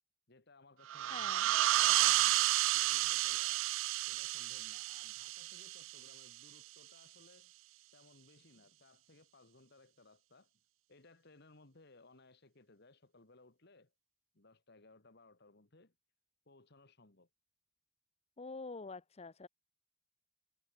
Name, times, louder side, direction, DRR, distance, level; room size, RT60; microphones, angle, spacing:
voice 1, 0.3-3.7 4.0-7.5 7.9-10.5 10.9-13.9 14.3-15.9 16.5-17.3, left 2 dB, 60° left, 2.2 m, -63 dB
sound 1, 0.9-6.2, right 16 dB, 80° right, 0.3 m, -31 dB
voice 2, 1.1-1.6 18.4-19.5, left 3 dB, 35° left, 0.7 m, -47 dB
head